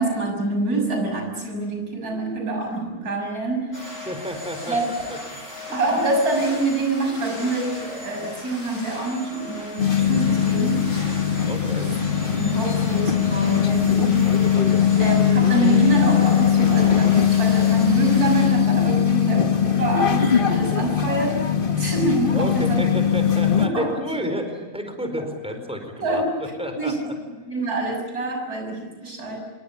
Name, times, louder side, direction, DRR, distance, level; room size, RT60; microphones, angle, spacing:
voice 1, 0.0-4.0 4.7-4.8 5.7-10.9 11.8-12.0 12.4-14.3 15.0-21.4 21.7-22.8 23.6-24.4 26.0-27.0 27.5-29.5, right 2 dB, 85° right, 2 dB, 7.1 m, -26 dB
sound 1, 3.7-18.5, left 1 dB, 55° left, 6.5 m, -37 dB
voice 2, 4.1-4.8 11.4-11.9 22.3-27.0, equal, 5° right, 5 dB, 4.6 m, -30 dB
sound 2, 9.8-23.7, left 8 dB, 35° left, 1.6 m, -20 dB
27.0 x 23.0 x 8.5 m, 1.4 s
omnidirectional pair, 1.6 m